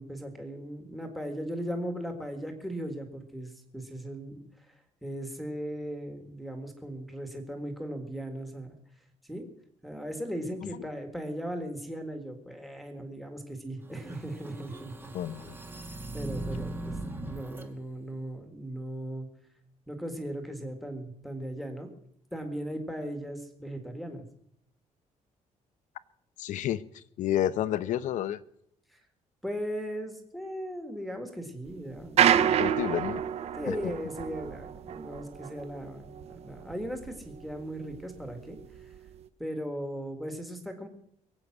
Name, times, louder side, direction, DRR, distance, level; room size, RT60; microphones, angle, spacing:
voice 1, 0.0-4.7 5.0-8.8 9.3-9.5 9.8-15.1 16.1-19.3 19.9-21.9 22.3-24.2 28.9-29.0 29.4-32.6 33.6-38.6 39.4-40.9, equal, ahead, 1.8 m, -38 dB
sound 1, 13.9-17.7, right 2 dB, 15° right, 1.3 m, -39 dB
voice 2, 15.1-15.6 26.4-26.8 27.2-28.4 32.6-33.2 33.7-33.8, left 11 dB, 75° left, 0.7 m, -30 dB
sound 2, 32.0-37.6 37.9-39.2, right 9 dB, 55° right, 0.7 m, -28 dB
22.5 x 8.4 x 6.1 m
cardioid pair, 170°, 13 cm